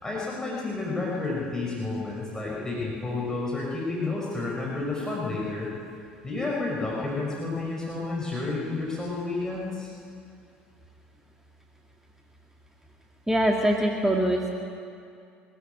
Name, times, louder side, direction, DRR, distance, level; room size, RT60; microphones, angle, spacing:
voice 1, 0.0-5.7 6.2-9.9, left 3 dB, 10° left, -5 dB, 5.9 m, -30 dB
voice 2, 13.3-14.5, right 1 dB, 5° right, 0 dB, 2.1 m, -23 dB
23.5 x 14.0 x 9.3 m, 2.4 s
figure-of-eight pair, 65°, 6 cm